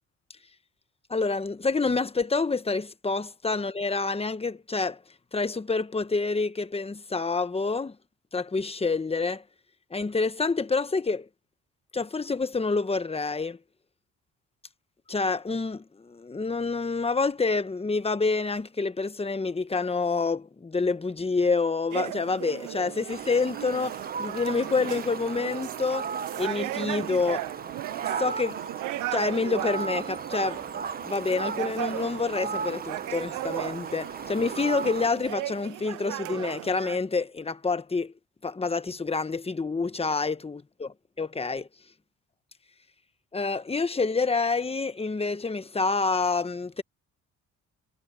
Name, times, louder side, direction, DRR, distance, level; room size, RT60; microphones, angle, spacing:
voice 1, 1.1-5.0 5.3-8.0 8.3-9.4 9.9-11.3 11.9-13.6 15.1-26.0 26.4-27.5 28.2-28.6 29.1-30.6 31.0-38.1 38.4-41.7 43.3-46.8, left 4 dB, 20° left, 1.2 m, -28 dB
sound 1, 21.9-37.0, right 17 dB, 85° right, 0.6 m, -36 dB
Fowl, 23.1-35.1, right 5 dB, 30° right, 0.9 m, -36 dB
cardioid pair, 90°, 30 cm